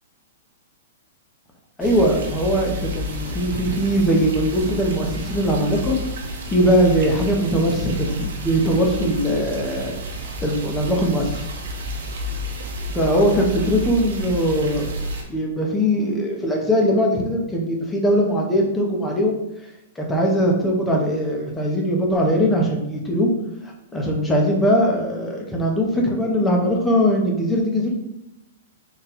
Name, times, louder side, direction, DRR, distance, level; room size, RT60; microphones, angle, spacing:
voice 1, 1.8-5.9 6.5-9.9 10.4-11.5 12.9-14.9 15.3-19.4 20.0-23.3 23.6-27.9, equal, 5° left, -1 dB, 0.5 m, -20 dB
sound 1, 1.8-15.2, equal, 65° right, 0.8 m, -30 dB
3.8 x 2.2 x 4.2 m, 0.93 s
hypercardioid pair, 175°, 0 cm